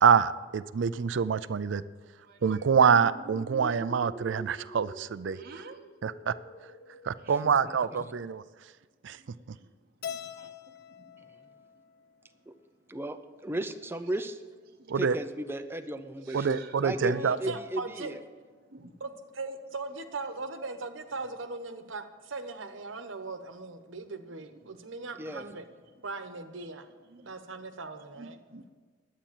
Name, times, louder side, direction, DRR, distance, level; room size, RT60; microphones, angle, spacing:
voice 1, 0.0-1.8 2.4-5.4 6.0-6.3 7.0-8.4 9.0-9.2 14.9-15.2 16.3-17.4, right 6 dB, 65° right, 16 dB, 0.4 m, -25 dB
voice 2, 2.3-2.7 5.3-5.8 7.2-7.4 10.4-10.5 16.3-16.8 18.7-18.9 26.6-26.7 27.1-27.2 28.2-28.7, right 3 dB, 50° right, 3 dB, 0.8 m, -49 dB
sound 1, 2.7-8.0, right 2 dB, 30° left, 1.7 m, -46 dB
Keyboard (musical), 10.0-12.4, left 8 dB, 55° left, 0.5 m, -43 dB
voice 3, 13.4-14.4 14.9-18.2 25.1-25.5, right 1 dB, 10° right, 8 dB, 0.6 m, -35 dB
voice 4, 17.0-18.1 19.0-25.6 26.0-26.8 27.2-28.4, right 3 dB, 85° right, 8 dB, 1.1 m, -39 dB
11.5 x 8.4 x 7.4 m, 1.5 s
head